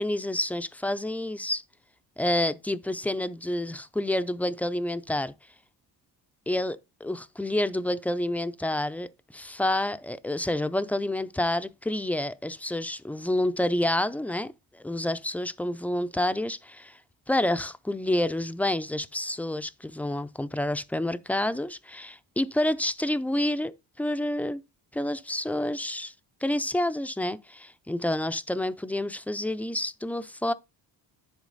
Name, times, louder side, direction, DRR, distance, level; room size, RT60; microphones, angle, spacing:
voice 1, 0.0-1.6 2.2-5.3 6.5-17.0 17.3-24.6 24.9-26.1 26.4-30.5, left 1 dB, 5° left, 0.4 m, -29 dB
10.5 x 4.4 x 3.9 m
cardioid pair, 100°, 43 cm